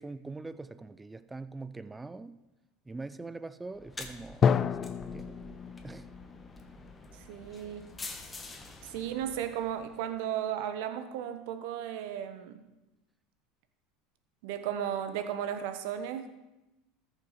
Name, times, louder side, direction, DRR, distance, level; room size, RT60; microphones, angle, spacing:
voice 1, 0.0-2.3 2.9-5.4 5.8-6.1, right 3 dB, 15° right, 14 dB, 0.5 m, -43 dB
sound 1, 3.7-10.1, left 3 dB, 20° left, 1.3 m, -47 dB
Drum, 4.4-8.1, left 7 dB, 35° left, 0.4 m, -31 dB
voice 2, 7.1-7.9 8.8-12.6 14.4-16.3, right 9 dB, 70° right, 9 dB, 1.0 m, -35 dB
14.0 x 5.6 x 5.0 m, 1.0 s
hypercardioid pair, 80°, 0 cm